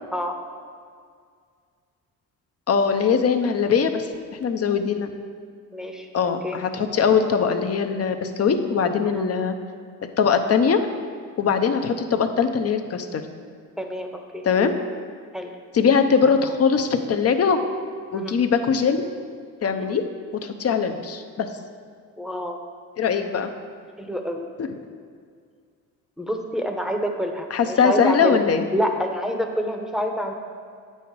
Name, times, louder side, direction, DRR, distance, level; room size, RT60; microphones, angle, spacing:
voice 1, 2.7-4.1 4.4-5.1 6.1-9.5 10.2-10.8 11.4-13.2 14.4-14.7 15.7-17.6 18.1-19.1 19.6-20.0 20.4-21.5 23.0-23.5 27.5-28.7, left 6 dB, 45° left, 7 dB, 0.7 m, -21 dB
voice 2, 5.7-6.6 9.1-9.3 13.8-14.1 14.3-14.4 15.3-15.5 18.1-18.4 19.6-19.9 20.7-20.8 22.2-22.6 24.0-24.5 26.2-28.4 28.7-30.3, equal, ahead, 3 dB, 0.8 m, -28 dB
8.4 x 5.6 x 4.6 m, 2.1 s
cardioid pair, 85°, 36 cm